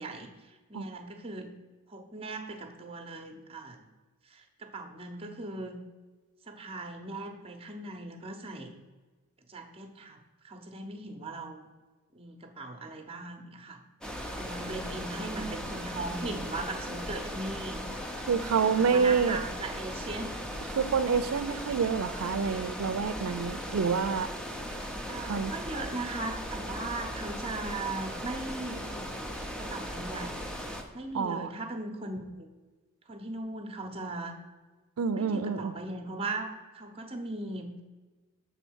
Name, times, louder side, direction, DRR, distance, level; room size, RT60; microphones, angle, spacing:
voice 1, 0.0-1.5 1.9-3.8 4.3-5.8 6.5-8.7 9.5-10.2 10.4-11.6 12.1-13.8 14.3-17.8 18.6-20.4 25.1-29.1 29.6-30.4 30.9-32.5 33.1-34.3 35.1-37.8, right 2 dB, 25° right, 5 dB, 0.8 m, -39 dB
sound 1, 14.0-30.8, equal, 5° left, 0.6 m, -38 dB
voice 2, 18.3-19.4 20.8-24.3 25.3-25.5 31.1-31.5 35.0-35.7, right 6 dB, 80° right, 12 dB, 0.4 m, -27 dB
6.9 x 3.7 x 6.2 m, 1.3 s
head